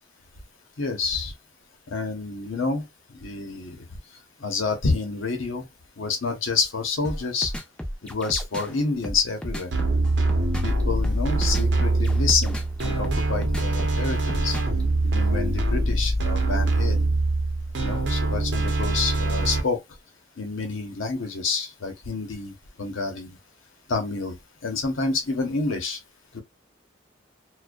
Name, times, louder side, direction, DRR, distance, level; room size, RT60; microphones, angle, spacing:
voice 1, 0.8-1.3 1.9-2.8 3.2-3.8 4.4-5.6 6.0-7.5 8.0-9.7 10.6-12.5 12.8-14.6 15.0-17.0 17.8-19.8 20.4-23.4 23.9-24.3 24.6-26.0 26.3-26.4, left 4 dB, 90° left, 0.8 m, -28 dB
sound 1, 7.0-14.8, equal, 5° left, 0.4 m, -33 dB
sound 2, 9.7-19.6, right 2 dB, 60° right, 0.7 m, -23 dB
2.5 x 2.2 x 2.2 m
head